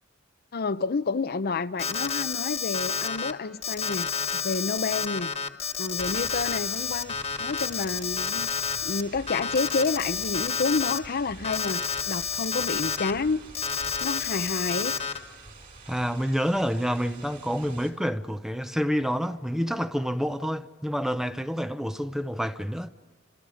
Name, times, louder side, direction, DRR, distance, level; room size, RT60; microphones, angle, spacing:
voice 1, 0.5-5.3 5.8-8.5 8.8-13.4 14.0-14.9, left 4 dB, 50° left, 0.6 m, -29 dB
Alarm, 1.8-3.3 3.6-9.0 9.3-11.0 11.4-13.1 13.5-15.2, left 6 dB, 30° left, 1.5 m, -30 dB
sound 1, 6.0-17.9, right 3 dB, 45° right, 4.6 m, -47 dB
voice 2, 15.9-22.9, equal, ahead, 0.7 m, -28 dB
30.0 x 27.0 x 5.0 m
head